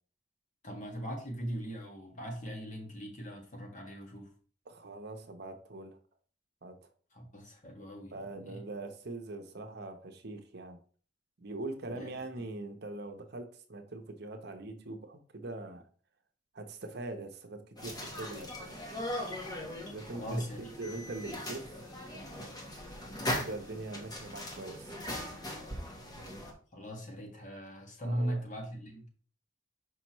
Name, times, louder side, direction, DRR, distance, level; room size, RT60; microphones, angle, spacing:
voice 1, 0.6-4.3 7.1-8.6 11.9-12.4 20.1-20.7 26.7-29.1, equal, 40° left, 1.6 m, -39 dB
voice 2, 4.7-6.0 6.6-6.9 8.1-10.8 11.4-15.8 16.5-18.8 19.7-21.7 23.2-25.0 28.0-28.4, right 2 dB, 60° right, 0.9 m, -42 dB
sound 1, 17.8-26.5, left 1 dB, 20° left, 1.2 m, -40 dB
5.9 x 5.2 x 3.0 m
head